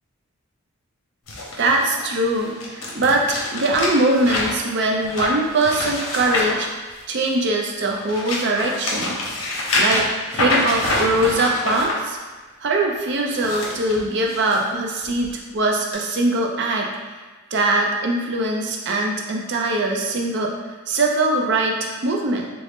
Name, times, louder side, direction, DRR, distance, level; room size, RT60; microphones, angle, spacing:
sound 1, 1.3-7.4 7.9-11.9 13.2-14.6 15.0-15.3 15.9-16.0, left 1 dB, 65° left, 0.7 m, -26 dB
voice 1, 1.6-6.7 7.1-9.1 9.7-12.2 12.6-16.9 17.5-20.5 20.9-22.5, right 2 dB, 50° right, 0 dB, 0.4 m, -22 dB
3.6 x 2.0 x 3.5 m, 1.3 s
head